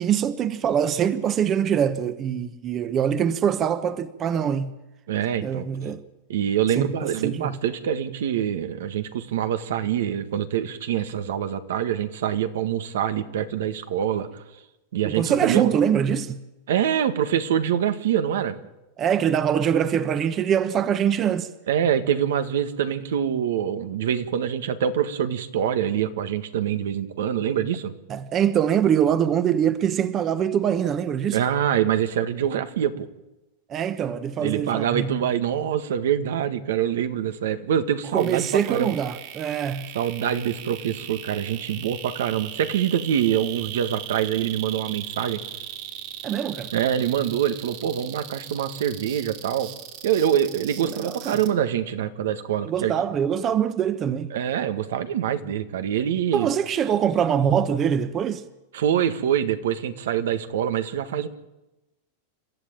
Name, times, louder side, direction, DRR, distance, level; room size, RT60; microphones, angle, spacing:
voice 1, 0.0-4.8 5.4-6.0 6.8-7.6 15.0-16.4 19.0-21.5 28.1-31.4 33.7-35.2 38.1-39.9 46.2-46.7 50.8-51.4 52.6-54.3 56.3-58.4, right 8 dB, 30° right, 1.1 m, -24 dB
voice 2, 5.1-5.7 6.3-14.3 14.9-15.7 16.7-18.6 21.7-27.9 31.3-33.1 34.4-38.9 39.9-45.4 46.7-49.7 50.0-52.9 54.3-56.5 58.7-61.3, right 9 dB, 80° right, 1.7 m, -25 dB
sound 1, 38.2-51.5, right 12 dB, 55° right, 3.9 m, -38 dB
29.0 x 13.0 x 8.9 m
supercardioid pair, 140°, 0 cm